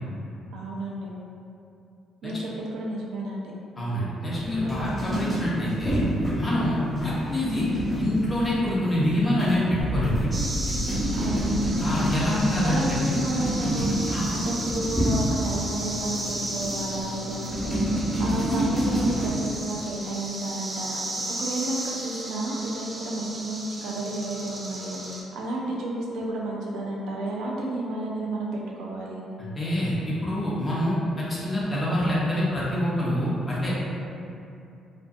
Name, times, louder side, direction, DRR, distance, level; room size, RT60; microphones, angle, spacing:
voice 1, 0.5-1.1 2.2-3.5 4.8-5.0 11.1-11.7 12.6-21.1 21.4-25.0 25.3-29.2, right 2 dB, 85° right, -3 dB, 0.4 m, -32 dB
voice 2, 3.8-6.0 6.3-7.6 7.9-10.3 11.8-13.2 14.1-14.2 29.4-33.8, left 1 dB, 20° left, -8 dB, 0.8 m, -26 dB
sound 1, 4.3-19.3, equal, ahead, 1.1 m, -29 dB
sound 2, 9.8-15.9, equal, 75° left, 0.5 m, -35 dB
sound 3, 10.3-25.2, right 1 dB, 25° right, 0.4 m, -35 dB
2.5 x 2.4 x 2.4 m, 2.6 s
cardioid pair, 95°, 0 cm